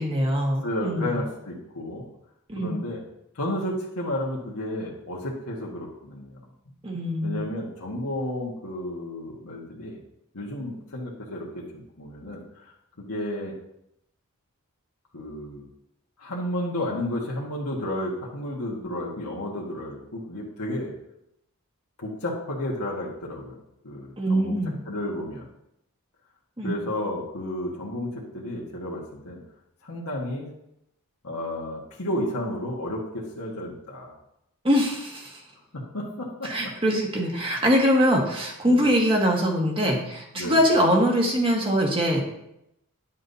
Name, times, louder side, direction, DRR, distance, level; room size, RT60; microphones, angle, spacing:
voice 1, 0.0-1.2 2.5-2.8 6.8-7.4 24.2-24.8 26.6-26.8 34.6-35.3 36.4-42.2, equal, 25° right, 0 dB, 1.4 m, -23 dB
voice 2, 0.6-2.1 2.5-3.0 3.3-6.4 7.2-10.0 10.3-12.7 13.0-13.5 15.1-15.6 16.2-20.9 22.0-23.6 23.8-24.6 24.8-25.5 26.6-29.4 29.8-30.5 31.2-34.1 35.7-36.7 38.6-38.9 40.3-40.6, left 1 dB, 90° left, -3 dB, 1.5 m, -32 dB
9.7 x 7.3 x 2.7 m, 0.81 s
head